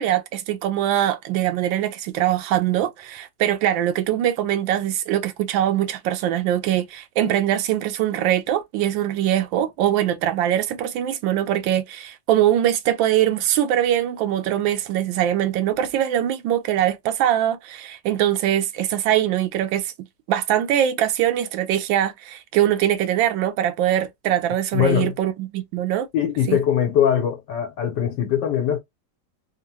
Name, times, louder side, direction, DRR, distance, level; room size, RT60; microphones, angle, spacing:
voice 1, 0.0-19.9 20.3-26.1 26.5-26.6, right 11 dB, 90° right, 1.3 m, -22 dB
voice 2, 24.7-25.1 26.1-28.8, left 9 dB, 75° left, 1.4 m, -21 dB
3.6 x 2.1 x 2.8 m
omnidirectional pair, 2.0 m